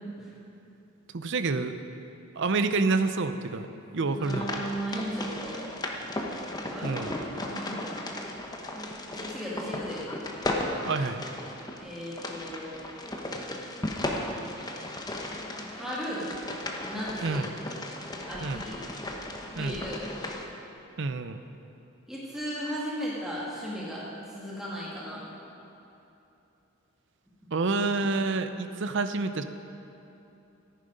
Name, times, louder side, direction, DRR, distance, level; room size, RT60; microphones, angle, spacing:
voice 1, 1.1-1.8 2.3-3.7 3.9-4.5 6.8-7.1 10.8-11.2 17.2-17.5 18.4-18.6 19.5-19.8 21.0-21.4 27.5-29.4, right 3 dB, 65° right, 10 dB, 0.6 m, -28 dB
voice 2, 4.0-5.7 6.7-7.1 7.5-8.0 9.1-10.1 11.8-12.8 15.7-16.3 16.8-17.4 18.3-18.8 19.6-20.1 22.1-25.2, equal, ahead, -7 dB, 2.0 m, -36 dB
sound 1, 4.2-20.5, left 1 dB, 20° left, 1.0 m, -36 dB
14.0 x 10.5 x 5.2 m, 2.9 s
head